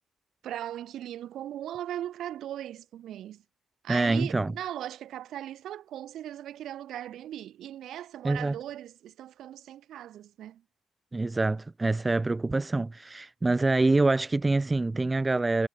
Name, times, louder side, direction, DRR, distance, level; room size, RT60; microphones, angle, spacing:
voice 1, 0.4-3.4 3.8-10.6, right 12 dB, 80° right, 3.9 m, -38 dB
voice 2, 3.9-4.5 8.2-8.6 11.1-15.7, right 2 dB, 15° right, 0.9 m, -25 dB
cardioid pair, 155°, 0 cm